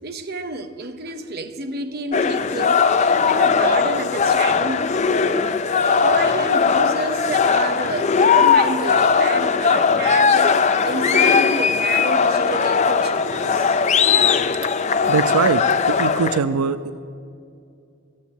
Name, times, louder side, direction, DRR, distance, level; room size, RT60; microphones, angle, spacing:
voice 1, 0.0-5.5 5.8-10.5 10.8-13.8 14.7-14.8, right 3 dB, 45° right, 7 dB, 0.8 m, -30 dB
sound 1, 2.1-16.4, left 5 dB, 30° left, 0.4 m, -18 dB
voice 2, 15.1-16.8, right 5 dB, 80° right, 12 dB, 0.4 m, -21 dB
13.5 x 9.8 x 8.3 m, 2.5 s
head